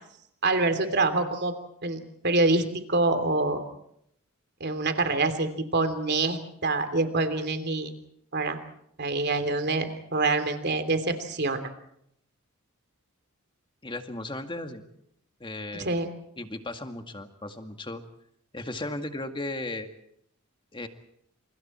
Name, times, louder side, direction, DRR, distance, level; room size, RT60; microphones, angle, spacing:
voice 1, 0.4-1.5 1.8-3.6 4.6-8.0 8.3-8.6 9.0-11.6 15.8-16.1, right 3 dB, 50° right, 8 dB, 3.2 m, -26 dB
voice 2, 13.8-14.8 15.4-15.9 16.4-18.0 18.5-19.9 20.7-20.9, left 2 dB, 20° left, 6 dB, 2.0 m, -36 dB
29.0 x 28.0 x 4.5 m, 0.73 s
head